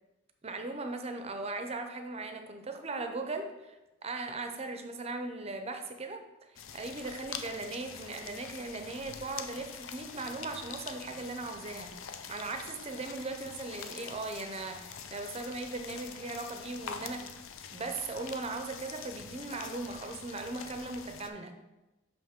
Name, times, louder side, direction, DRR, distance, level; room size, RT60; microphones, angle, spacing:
voice 1, 0.4-3.8 4.0-6.2 6.7-11.9 12.3-17.3 17.7-21.6, right 3 dB, 30° right, 6 dB, 0.6 m, -38 dB
sound 1, 6.6-21.3, left 7 dB, 75° left, 0.5 m, -45 dB
5.7 x 5.5 x 3.6 m, 1.0 s
head